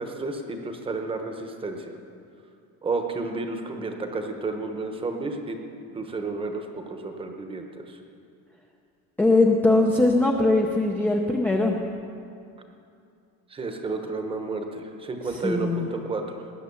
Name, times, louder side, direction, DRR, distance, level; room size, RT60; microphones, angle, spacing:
voice 1, 0.0-1.9 2.8-5.6 5.9-8.0 13.5-16.5, right 3 dB, 15° right, 5 dB, 1.0 m, -31 dB
voice 2, 9.2-11.8 15.4-15.9, left 2 dB, 5° left, 0 dB, 0.6 m, -21 dB
19.5 x 9.5 x 7.0 m, 2.5 s
cardioid pair, 175°, 34 cm